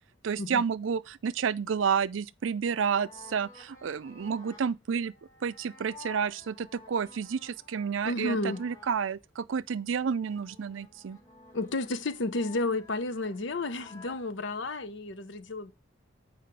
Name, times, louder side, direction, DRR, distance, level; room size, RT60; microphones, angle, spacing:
voice 1, 0.2-5.1 5.4-11.2, right 6 dB, 75° right, 0.4 m, -30 dB
sound 1, 2.9-9.0 9.5-14.3, left 3 dB, 15° left, 5.3 m, -53 dB
voice 2, 8.0-8.6 11.5-15.7, left 2 dB, 65° left, 0.8 m, -32 dB
7.7 x 4.9 x 4.6 m
head